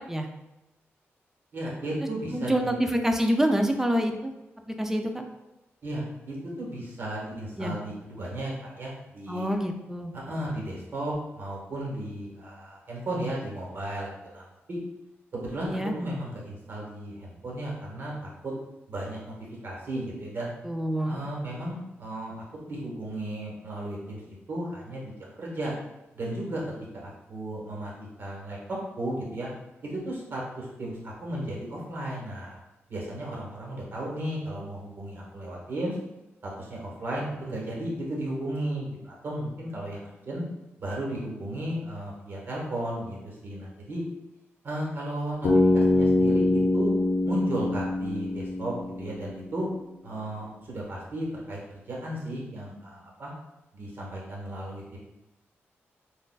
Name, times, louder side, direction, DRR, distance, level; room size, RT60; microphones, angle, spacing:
voice 1, 1.5-2.8 5.8-9.5 10.1-14.4 14.7-14.8 15.3-18.5 18.9-19.3 19.6-20.5 21.0-22.3 22.6-25.1 25.4-25.7 26.1-26.6 26.9-27.9 28.2-29.5 29.8-32.6 32.9-35.9 36.4-40.4 40.8-44.0 44.6-45.5 45.7-46.9 47.2-49.7 50.0-53.3 53.7-55.0, right 1 dB, 55° right, -3 dB, 1.2 m, -34 dB
voice 2, 2.3-4.3 4.8-5.2 7.6-7.8 9.3-10.1 15.7-15.9 20.6-21.2, equal, 10° right, 4 dB, 0.4 m, -26 dB
Bass guitar, 45.4-49.5, left 2 dB, 75° left, 0.8 m, -24 dB
6.3 x 2.5 x 2.3 m, 0.97 s
wide cardioid pair, 130°, 5 cm